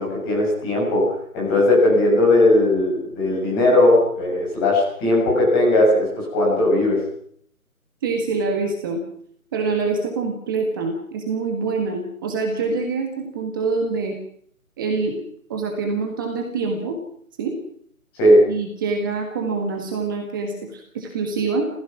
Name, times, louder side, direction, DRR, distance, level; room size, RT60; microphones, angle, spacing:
voice 1, 0.0-7.0 18.2-18.4, left 1 dB, 15° left, -3 dB, 7.0 m, -18 dB
voice 2, 8.0-9.0 9.5-14.2 14.8-15.2 15.5-17.0 17.4-17.5 18.5-21.6, right 4 dB, 15° right, 1 dB, 1.6 m, -25 dB
29.5 x 15.5 x 6.1 m, 0.64 s
hypercardioid pair, 170°, 43 cm